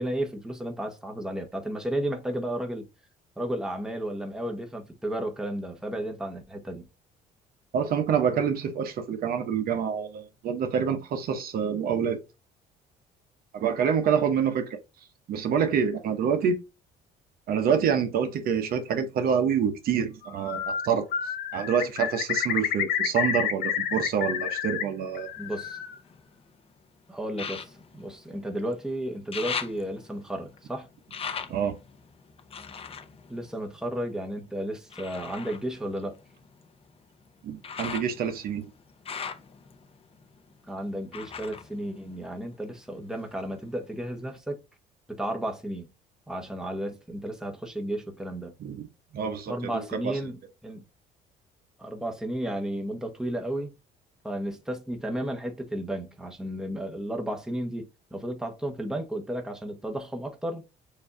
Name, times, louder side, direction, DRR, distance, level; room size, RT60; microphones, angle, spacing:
voice 1, 0.0-2.8 3.4-6.8 25.4-25.8 27.1-30.9 33.3-36.2 40.7-44.6 45.1-45.9 46.3-48.5 49.5-50.8 51.8-53.7 54.2-60.6, right 1 dB, 5° right, 1.0 m, -33 dB
voice 2, 7.7-12.2 13.5-14.8 15.3-16.6 17.5-21.1 21.5-25.3 31.5-31.8 37.4-38.6 48.6-48.9 49.1-49.7 50.0-50.2, right 7 dB, 60° right, 0.8 m, -27 dB
Bird, 20.3-20.9 21.1-24.8 25.2-26.0, left 9 dB, 70° left, 1.0 m, -29 dB
sound 1, 25.1-26.5 27.3-28.8 29.1-34.3 34.9-42.7 43.1-43.9 44.4-44.5, left 6 dB, 35° left, 0.7 m, -40 dB
6.9 x 2.7 x 2.6 m
cardioid pair, 110°, 17 cm